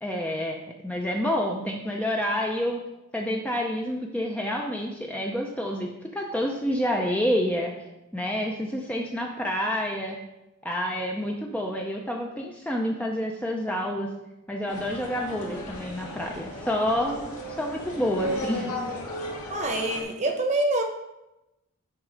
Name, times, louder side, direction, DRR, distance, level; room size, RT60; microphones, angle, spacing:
voice 1, 0.0-2.8 3.1-7.9 8.1-10.2 10.6-14.1 14.5-18.7, equal, 5° left, 0 dB, 0.4 m, -28 dB
sound 1, 14.7-20.0, left 1 dB, 90° left, 2.0 m, -36 dB
voice 2, 19.5-20.8, right 2 dB, 30° right, 4 dB, 0.9 m, -25 dB
9.6 x 3.6 x 5.0 m, 0.95 s
head